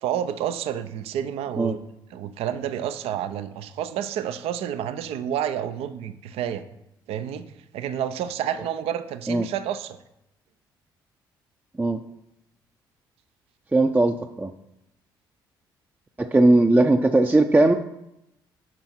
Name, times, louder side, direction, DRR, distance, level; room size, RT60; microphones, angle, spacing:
voice 1, 0.0-1.8 2.1-6.6 7.1-7.5 7.7-10.0, right 10 dB, 60° right, 11 dB, 0.6 m, -29 dB
voice 2, 13.7-14.5 16.2-17.7, right 2 dB, 15° right, 5 dB, 0.6 m, -18 dB
10.5 x 5.4 x 4.5 m, 0.85 s
figure-of-eight pair, 45°, 11 cm